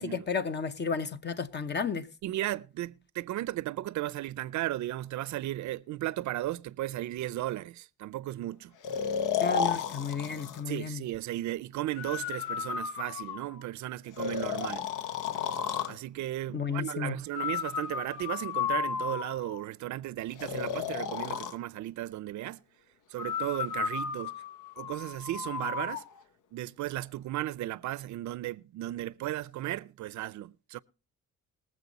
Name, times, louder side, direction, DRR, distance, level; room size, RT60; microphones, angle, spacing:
voice 1, 0.0-2.1 9.4-11.0 16.5-17.1, left 5 dB, 35° left, 0.9 m, -33 dB
voice 2, 2.2-8.7 10.7-14.9 15.9-22.6 23.1-24.3 24.8-26.1 26.5-30.8, right 15 dB, 70° right, 0.5 m, -35 dB
Breathing, 8.8-10.6 12.0-13.6 14.2-16.0 17.3-19.6 20.4-21.6 23.2-26.0, left 7 dB, 85° left, 0.9 m, -33 dB
20.5 x 7.5 x 4.0 m
cardioid pair, 90°, 30 cm